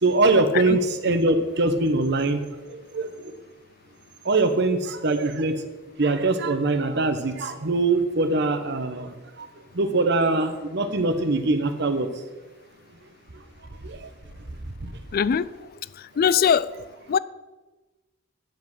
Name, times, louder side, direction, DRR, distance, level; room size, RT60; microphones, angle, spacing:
voice 1, 0.0-2.4 2.7-3.3 4.2-5.6 6.0-9.5 9.7-12.1 13.8-14.1 14.8-14.9, right 2 dB, 60° right, 1.0 m, -23 dB
voice 2, 15.1-15.6 16.0-17.2, left 7 dB, 50° left, 0.3 m, -22 dB
9.1 x 7.7 x 6.2 m
head